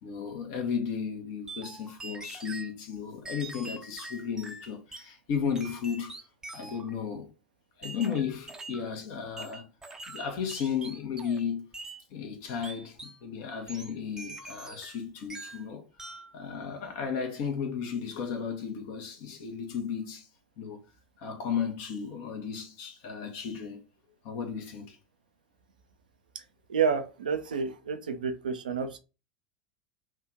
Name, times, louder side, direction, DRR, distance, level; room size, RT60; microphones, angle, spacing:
voice 1, 0.0-6.1 6.5-7.3 7.8-9.7 10.1-11.7 12.1-15.8 16.3-20.3 20.6-20.8 21.2-23.8 24.2-25.0, left 7 dB, 50° left, 1.2 m, -34 dB
sound 1, 1.5-2.7 3.2-5.1 5.5-6.9 7.8-8.9 9.4-11.5 11.7-12.0 12.6-13.2 13.7-15.0 15.3-15.7 16.0-16.3, right 2 dB, 10° right, 0.7 m, -44 dB
voice 2, 26.7-29.0, right 6 dB, 70° right, 0.6 m, -29 dB
3.5 x 2.5 x 4.6 m
figure-of-eight pair, 75°, 5 cm